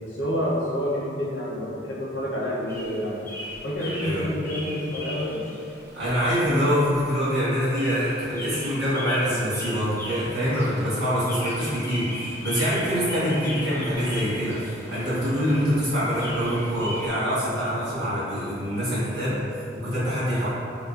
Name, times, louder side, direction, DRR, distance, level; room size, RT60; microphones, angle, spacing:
voice 1, 0.0-3.2 3.6-5.4, equal, 80° left, -6 dB, 0.7 m, -28 dB
sound 1, 2.7-17.1, equal, 15° left, 0.3 m, -38 dB
voice 2, 5.9-20.5, equal, 70° right, -11 dB, 1.2 m, -25 dB
3.6 x 2.4 x 2.4 m, 2.6 s
head